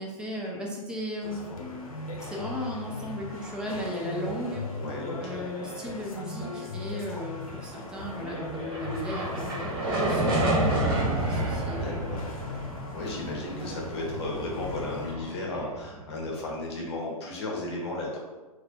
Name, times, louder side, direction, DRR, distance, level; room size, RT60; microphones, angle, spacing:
voice 1, 0.0-1.4 2.2-4.6 5.2-9.6 10.0-12.1, equal, 5° right, -2 dB, 0.3 m, -36 dB
sound 1, 1.2-15.1, left 3 dB, 65° left, 0.7 m, -38 dB
voice 2, 4.7-5.4 11.7-12.2 12.9-18.2, left 2 dB, 45° left, -2 dB, 0.9 m, -34 dB
sound 2, 8.0-16.4, right 1 dB, 40° right, 1.0 m, -30 dB
4.1 x 2.1 x 2.6 m, 1.2 s
figure-of-eight pair, 110°, 19 cm